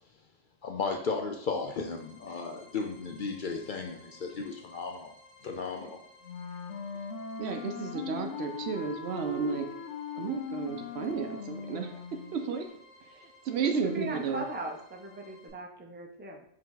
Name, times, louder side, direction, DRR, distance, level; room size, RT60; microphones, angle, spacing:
voice 1, 0.6-5.1 5.4-6.0, left 4 dB, 60° left, 3 dB, 0.6 m, -35 dB
sound 1, 1.3-15.5, left 2 dB, ahead, 1.6 m, -57 dB
Wind instrument woodwind instrument, 6.2-12.4, left 5 dB, 90° left, 0.9 m, -40 dB
voice 2, 7.4-9.7 10.2-12.7 13.1-14.4, right 5 dB, 70° right, 7 dB, 0.8 m, -33 dB
voice 3, 13.6-16.4, right 2 dB, 15° right, 2 dB, 0.3 m, -39 dB
4.7 x 2.9 x 3.8 m, 0.64 s
omnidirectional pair, 1.2 m